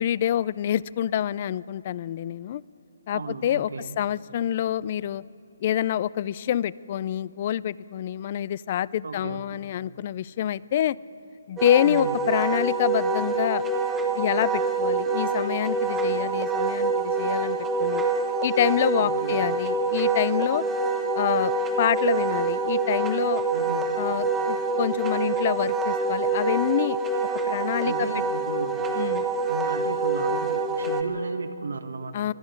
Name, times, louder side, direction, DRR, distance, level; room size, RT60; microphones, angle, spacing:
voice 1, 0.0-2.6 3.1-3.7 4.0-5.2 5.6-11.0 11.5-13.6 14.1-18.0 18.4-20.6 21.1-23.4 24.0-27.0 27.5-28.1 28.9-29.3 32.1-32.3, left 11 dB, 35° left, 22 dB, 0.4 m, -26 dB
voice 2, 3.1-4.0 9.0-9.6 11.8-12.2 19.0-19.5 23.5-23.9 27.8-28.9 29.5-32.3, right 3 dB, 80° right, 9 dB, 1.4 m, -35 dB
Wind instrument woodwind instrument, 11.6-31.0, right 3 dB, 10° right, 1.2 m, -26 dB
22.5 x 12.5 x 9.4 m, 2.8 s
hypercardioid pair, 165°, 0 cm